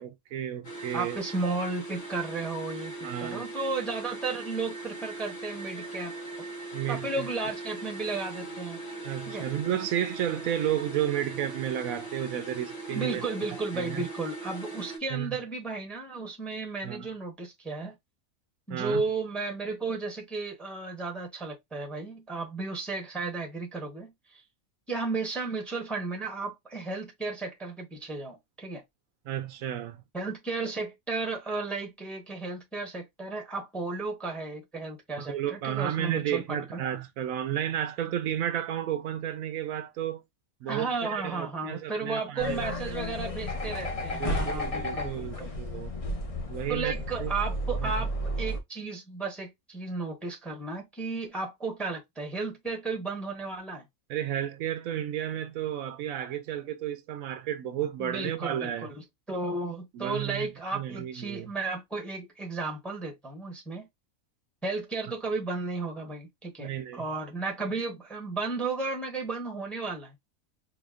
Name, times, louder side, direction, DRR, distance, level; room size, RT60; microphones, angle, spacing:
voice 1, 0.0-1.2 3.0-3.5 6.7-7.3 9.0-13.2 13.7-14.0 15.1-15.4 16.8-17.1 18.7-19.0 29.2-30.0 35.2-40.2 40.6-43.0 44.2-45.9 46.5-46.9 47.2-47.4 47.8-48.0 54.1-58.9 59.9-61.5 66.6-67.1, right 10 dB, 80° right, 1.0 m, -32 dB
sound 1, 0.6-15.0, right 3 dB, 65° left, 1.8 m, -40 dB
voice 2, 0.9-2.9 3.2-6.1 6.9-8.8 9.3-9.5 12.9-18.0 18.7-24.1 24.9-28.8 30.1-36.8 40.7-45.5 46.7-48.1 48.4-53.9 58.0-63.9 64.6-70.1, right 3 dB, ahead, 0.8 m, -34 dB
sound 2, 42.4-48.6, left 1 dB, 40° left, 0.5 m, -32 dB
4.9 x 2.2 x 2.4 m
omnidirectional pair, 1.4 m